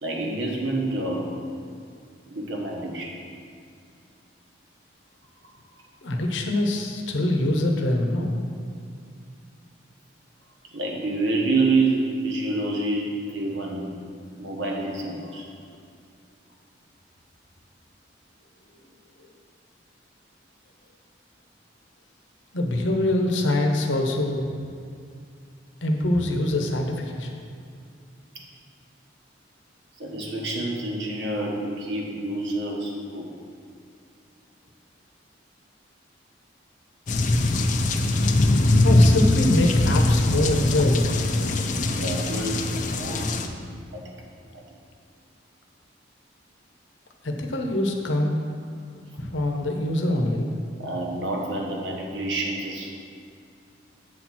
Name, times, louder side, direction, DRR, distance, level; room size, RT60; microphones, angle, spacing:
voice 1, 0.0-1.4 2.3-3.1 10.7-13.9 14.4-15.5 30.0-33.3 39.6-39.7 41.7-43.7 43.9-44.0 44.5-44.6 50.8-52.9, right 2 dB, 70° right, -1 dB, 1.3 m, -28 dB
voice 2, 6.0-8.4 22.5-24.5 25.8-27.3 38.8-41.1 47.2-48.4 49.2-50.5, left 1 dB, 75° left, 3 dB, 0.8 m, -24 dB
sound 1, 37.1-43.5, left 2 dB, 40° left, 0.4 m, -21 dB
7.8 x 4.4 x 6.0 m, 2.4 s
head